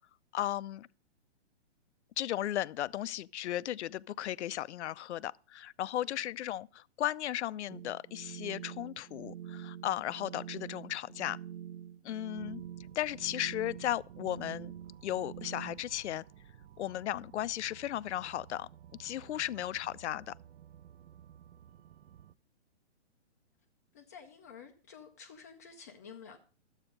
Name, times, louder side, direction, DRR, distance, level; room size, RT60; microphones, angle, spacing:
voice 1, 0.3-0.9 2.2-11.4 12.0-12.6 13.0-14.7 15.0-16.2 16.8-18.7 19.0-20.3, left 12 dB, 70° left, 0.5 m, -35 dB
sound 1, 7.7-15.8, right 10 dB, 80° right, 1.0 m, -46 dB
sound 2, 12.4-22.3, right 10 dB, 65° right, 0.5 m, -55 dB
voice 2, 19.2-19.6 23.9-26.4, left 6 dB, 15° left, 0.4 m, -52 dB
12.0 x 8.1 x 5.2 m
hypercardioid pair, 155°, 35 cm